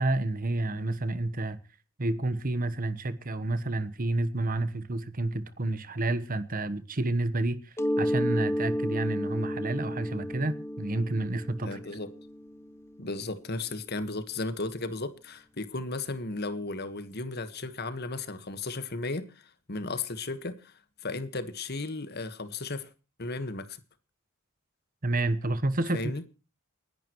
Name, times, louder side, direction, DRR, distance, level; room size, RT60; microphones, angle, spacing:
voice 1, 0.0-1.6 2.0-11.8 25.0-26.1, right 2 dB, 40° right, 1.1 m, -30 dB
Mallet percussion, 7.8-13.3, equal, 10° left, 0.8 m, -32 dB
voice 2, 11.6-12.1 13.0-20.7 21.0-22.9 23.2-23.8 25.9-26.2, left 3 dB, 50° left, 1.5 m, -35 dB
29.5 x 11.0 x 3.1 m
head